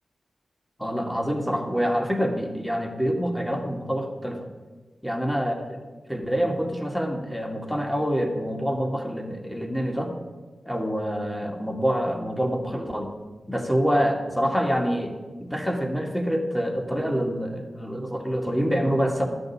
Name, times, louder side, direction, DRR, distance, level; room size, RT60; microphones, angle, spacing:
voice 1, 0.8-4.4 5.0-5.5 6.1-10.1 10.7-13.1 13.5-15.1 15.4-19.3, equal, 5° left, 3 dB, 2.1 m, -26 dB
11.5 x 5.4 x 8.5 m, 1.3 s
cardioid pair, 50°, 0 cm